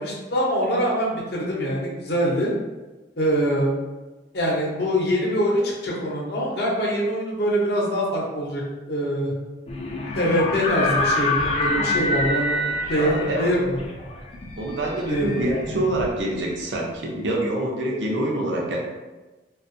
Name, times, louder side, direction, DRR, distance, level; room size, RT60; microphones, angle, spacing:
voice 1, 0.0-2.5 3.2-3.7 4.3-8.6 8.9-9.3 10.1-13.1 13.4-13.8 15.1-15.4, equal, 60° left, -3 dB, 0.7 m, -24 dB
sound 1, 9.7-16.5, left 2 dB, 30° left, 0.3 m, -27 dB
voice 2, 12.9-13.5 14.6-18.8, right 1 dB, 75° right, -1 dB, 0.6 m, -26 dB
2.7 x 2.3 x 2.5 m, 1.2 s
head